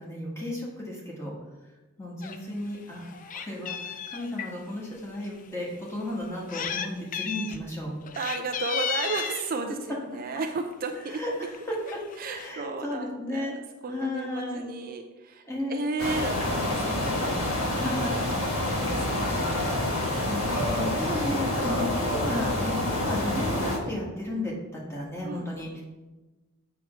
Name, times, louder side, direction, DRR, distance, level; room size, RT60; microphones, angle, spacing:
voice 1, 0.0-1.3 2.0-7.9 11.1-11.5 12.3-13.5 13.9-14.6 15.4-15.9 17.7-18.3 19.9-25.8, left 1 dB, 15° left, -4 dB, 1.6 m, -34 dB
Meow, 2.2-2.4 2.8-4.5 5.2-5.3 6.2-6.9 7.1-7.6 8.0-9.5 10.5-10.7 11.1-11.2 11.4-11.6 11.9-12.5, left 7 dB, 40° left, 0.4 m, -34 dB
voice 2, 8.2-11.2 12.2-19.6 25.2-25.5, right 3 dB, 40° right, 5 dB, 0.4 m, -34 dB
sound 1, 16.0-23.8, left 1 dB, 70° left, 1.4 m, -27 dB
7.6 x 3.5 x 5.7 m, 1.2 s
head